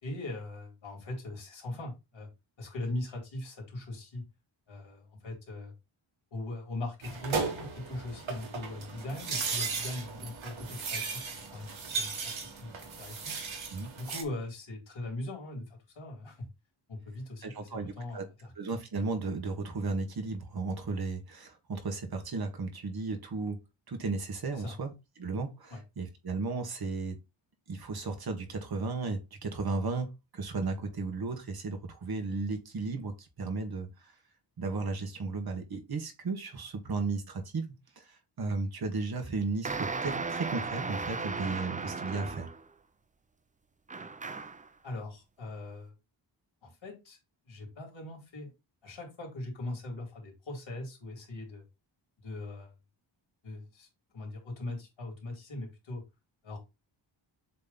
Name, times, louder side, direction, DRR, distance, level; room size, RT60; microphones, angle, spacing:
voice 1, 0.0-2.3 2.6-4.2 4.7-5.7 6.3-11.7 11.9-13.3 13.9-16.5 16.9-18.5 24.5-24.7 25.7-25.8 44.8-45.9 46.6-47.2 47.4-48.5 48.8-51.6 52.2-52.7 53.4-53.9 54.1-56.0 56.4-56.6, left 2 dB, 70° left, 3.1 m, -40 dB
sound 1, 7.0-14.2, right 4 dB, 75° right, 1.9 m, -36 dB
voice 2, 17.4-18.3 18.6-23.6 23.9-27.2 27.7-34.1 34.6-42.5, right 3 dB, 50° right, 1.6 m, -35 dB
sound 2, 39.6-42.7 43.9-44.7, right 4 dB, 20° right, 0.4 m, -36 dB
7.6 x 3.2 x 4.1 m
wide cardioid pair, 155°, 48 cm